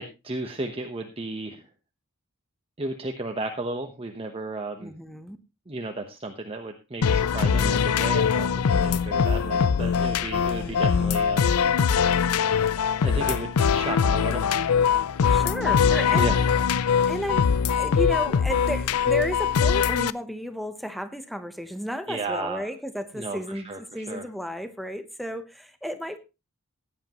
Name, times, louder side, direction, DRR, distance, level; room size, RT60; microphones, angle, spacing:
voice 1, 0.0-1.7 2.8-4.9 5.7-8.5 8.8-11.5 13.0-14.5 16.1-16.5 22.1-22.7 23.1-24.2, right 2 dB, 25° right, 4 dB, 1.0 m, -34 dB
voice 2, 4.8-5.4 10.6-10.9 15.3-16.3 17.1-26.2, equal, ahead, 9 dB, 0.9 m, -33 dB
sound 1, 7.0-20.1, left 6 dB, 85° left, 0.5 m, -22 dB
16.0 x 9.9 x 3.0 m, 0.27 s
head